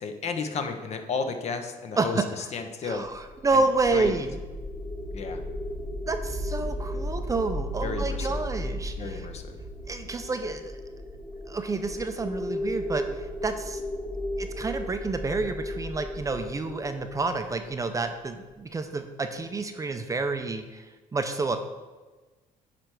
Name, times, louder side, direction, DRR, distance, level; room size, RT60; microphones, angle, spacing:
voice 1, 0.0-3.1 3.9-4.2 5.1-5.4 7.8-8.4 9.0-9.5, left 4 dB, 45° left, 7 dB, 0.9 m, -33 dB
voice 2, 2.8-4.4 6.1-9.3 9.9-10.8 11.5-13.8 14.4-21.6, right 3 dB, 20° right, 7 dB, 0.6 m, -29 dB
sound 1, 3.1-18.2, left 1 dB, 20° left, 1.5 m, -35 dB
10.0 x 3.4 x 6.1 m, 1.3 s
cardioid pair, 120°, 15 cm